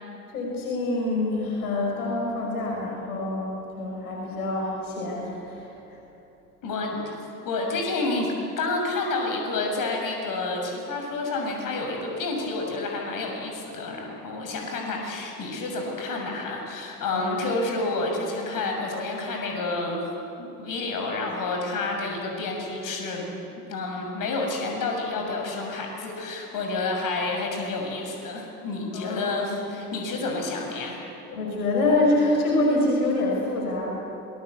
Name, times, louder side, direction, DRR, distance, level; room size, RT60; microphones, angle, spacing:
voice 1, 0.3-6.0 17.1-17.2 28.9-29.4 29.6-29.8 31.3-34.0, left 2 dB, 70° left, -1 dB, 5.6 m, -26 dB
voice 2, 6.6-7.2 7.4-20.1 20.4-23.3 23.7-31.0, left 3 dB, 45° left, 1 dB, 6.9 m, -29 dB
27.5 x 20.0 x 8.3 m, 2.9 s
figure-of-eight pair, 70°, 46 cm